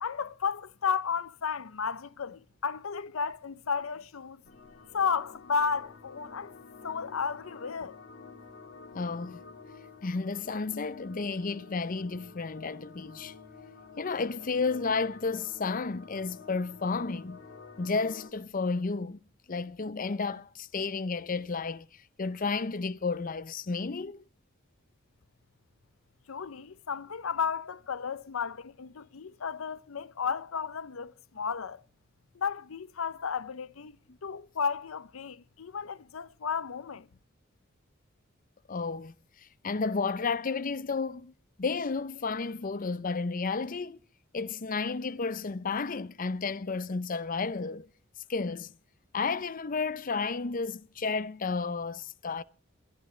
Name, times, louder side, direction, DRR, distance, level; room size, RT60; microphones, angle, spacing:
voice 1, 0.0-4.4 4.9-6.5 6.8-8.0 26.3-31.8 32.3-34.0 34.2-37.1, left 6 dB, 85° left, 0.7 m, -33 dB
sound 1, 4.4-18.3, left 5 dB, 60° left, 3.9 m, -50 dB
voice 2, 8.9-9.4 10.0-13.3 14.0-17.4 17.8-19.2 19.5-24.2 38.7-41.3 41.6-44.0 44.3-47.9 48.3-48.7 49.1-52.4, left 4 dB, 40° left, 0.6 m, -32 dB
22.5 x 12.5 x 3.2 m
head